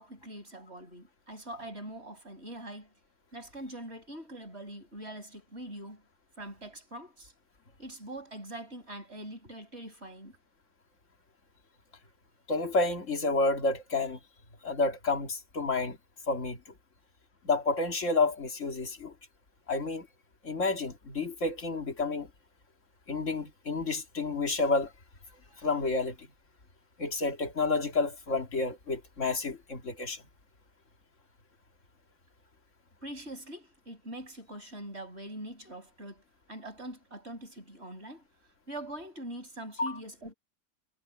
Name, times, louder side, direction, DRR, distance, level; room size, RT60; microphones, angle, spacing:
voice 1, 0.0-2.9 3.3-6.0 6.4-7.3 7.8-10.4 33.0-36.2 36.5-38.2 38.7-40.3, right 1 dB, 50° right, 7.6 m, -43 dB
voice 2, 12.5-14.2 14.6-16.0 16.3-16.6 17.4-19.1 19.7-20.1 20.4-22.3 23.1-24.9 25.6-26.3 27.0-30.2 39.8-40.0, left 3 dB, 60° left, 2.7 m, -30 dB
omnidirectional pair, 1.4 m